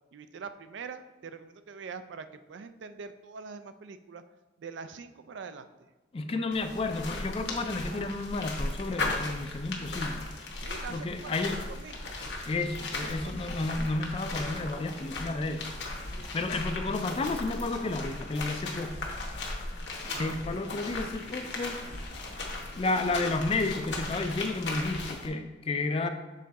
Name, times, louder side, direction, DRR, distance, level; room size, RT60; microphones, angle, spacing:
voice 1, 0.1-4.2 4.6-5.7 10.6-12.2 12.5-13.6 20.0-20.4 26.0-26.1, right 5 dB, 70° right, 11 dB, 0.4 m, -44 dB
voice 2, 6.1-10.2 10.9-11.6 12.4-15.6 16.3-19.0 20.2-21.8 22.8-26.1, left 3 dB, 30° left, 7 dB, 0.3 m, -31 dB
sound 1, 6.5-25.3, left 2 dB, 65° left, 1.0 m, -37 dB
6.6 x 3.7 x 4.0 m, 1.2 s
head